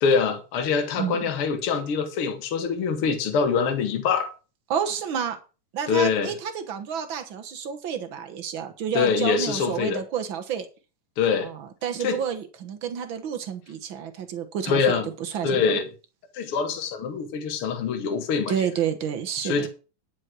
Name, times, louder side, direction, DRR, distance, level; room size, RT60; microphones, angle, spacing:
voice 1, 0.0-4.3 5.9-6.3 8.9-10.0 11.2-11.5 12.0-12.2 14.7-15.1 15.4-15.9 16.3-18.5 19.4-19.7, left 6 dB, 50° left, 2.3 m, -24 dB
voice 2, 0.9-1.3 4.7-5.4 5.7-10.7 11.4-15.8 18.5-19.7, right 8 dB, 55° right, 1.4 m, -30 dB
10.5 x 6.5 x 6.1 m
omnidirectional pair, 3.8 m